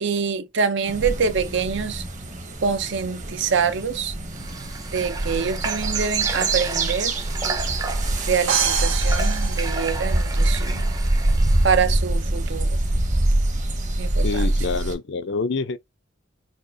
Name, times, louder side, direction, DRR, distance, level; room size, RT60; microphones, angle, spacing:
voice 1, 0.0-2.0 2.6-4.1 4.9-7.1 8.3-10.9 11.6-12.8 14.0-14.5, right 6 dB, 65° right, 0.7 m, -25 dB
sound 1, 0.9-14.9, right 2 dB, 40° right, 1.1 m, -24 dB
Water / Water tap faucet, 4.3-11.8, right 3 dB, 20° right, 0.6 m, -34 dB
sound 2, 8.5-10.4, right 7 dB, 85° right, 1.1 m, -26 dB
voice 2, 14.2-15.8, left 4 dB, 65° left, 0.5 m, -26 dB
6.3 x 2.4 x 2.6 m
head